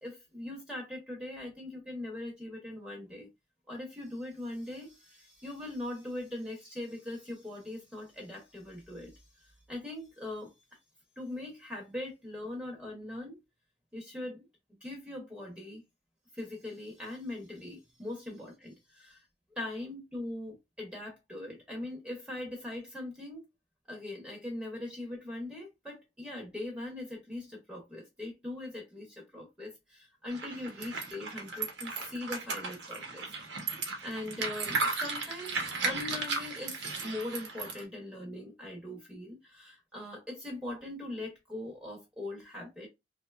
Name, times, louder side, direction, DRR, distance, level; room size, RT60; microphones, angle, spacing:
voice 1, 0.0-3.3 3.7-10.5 11.2-13.4 13.9-14.5 14.8-15.8 16.3-19.3 19.5-23.5 23.9-42.9, left 1 dB, 5° right, 0.7 m, -41 dB
sound 1, 30.3-37.8, right 4 dB, 80° right, 0.8 m, -35 dB
2.8 x 2.1 x 2.3 m
head